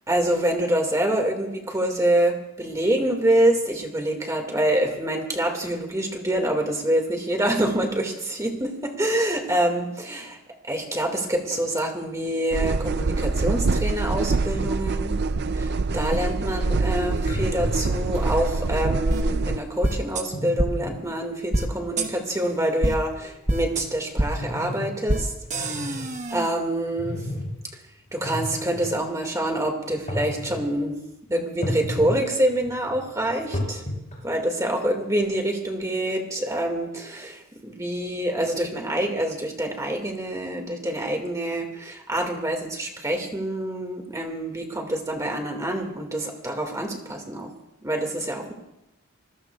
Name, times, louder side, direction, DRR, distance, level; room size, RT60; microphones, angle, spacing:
voice 1, 0.1-10.4 10.6-15.2 15.5-26.0 26.3-27.3 28.1-30.9 31.3-33.8 34.2-47.5 47.8-48.5, right 1 dB, 15° right, 2 dB, 2.1 m, -26 dB
sound 1, 12.5-19.6, right 3 dB, 50° right, 0.5 m, -25 dB
sound 2, 17.3-18.5 19.4-19.5 20.3-21.0 21.6-21.7 22.0-22.2 22.5-22.7 23.2-25.0 25.4-26.1 26.9-27.5 28.1-28.9 29.9-30.6 31.6-32.2 32.5-34.3, left 1 dB, 35° left, 7.5 m, -33 dB
sound 3, 19.1-19.2 19.8-20.2 20.6-20.7 21.5-21.7 22.0-22.1 22.8-22.9 23.5-23.8 24.2-24.3 25.1-25.2 25.5-26.5, right 1 dB, 35° right, 1.2 m, -24 dB
27.0 x 20.5 x 2.4 m, 0.89 s
head